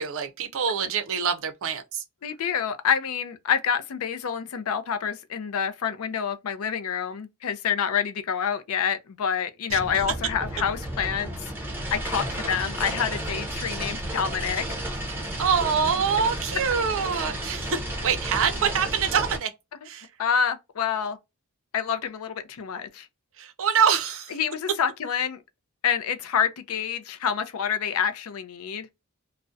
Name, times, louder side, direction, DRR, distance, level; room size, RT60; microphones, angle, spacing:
voice 1, 0.0-2.0 9.7-9.8 15.4-19.5 19.8-20.1 23.4-24.3, right 7 dB, 65° right, 0.5 m, -25 dB
voice 2, 2.2-14.6 20.2-21.2 21.7-23.1 24.3-25.4 25.8-28.9, left 7 dB, 70° left, 0.4 m, -27 dB
sound 1, 9.7-19.4, right 1 dB, 10° right, 0.6 m, -32 dB
2.3 x 2.1 x 2.5 m
head